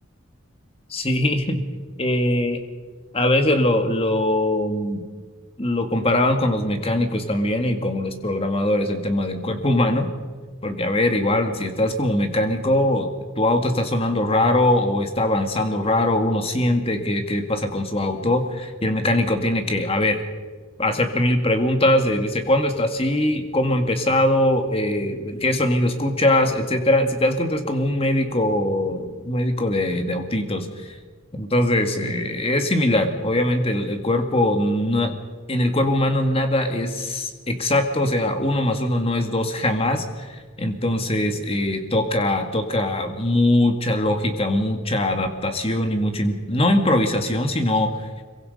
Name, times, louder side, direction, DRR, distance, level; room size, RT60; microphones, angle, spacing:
voice 1, 0.9-1.6 2.0-2.6 3.1-5.1 5.6-10.1 10.6-13.1 13.4-20.2 20.8-31.0 31.3-35.1 35.5-48.1, left 1 dB, 25° left, 6 dB, 2.1 m, -21 dB
25.5 x 23.5 x 5.4 m, 1.4 s
head